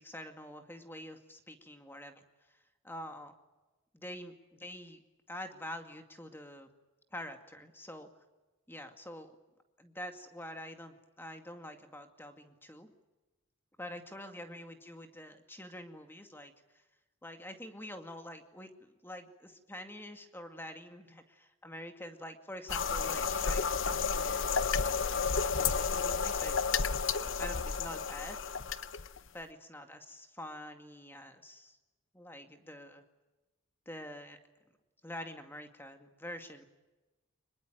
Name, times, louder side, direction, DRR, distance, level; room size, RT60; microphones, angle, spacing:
voice 1, 0.0-2.2 2.8-3.3 3.9-5.0 5.3-6.7 7.1-8.1 8.7-9.4 9.8-12.9 13.8-16.8 17.2-26.6 27.4-28.4 29.3-31.8 32.1-33.0 33.9-34.4 35.0-36.6, left 1 dB, 10° left, 6 dB, 2.2 m, -46 dB
sound 1, 22.7-29.3, left 5 dB, 60° left, 0.9 m, -31 dB
25.0 x 21.5 x 9.2 m, 1.1 s
head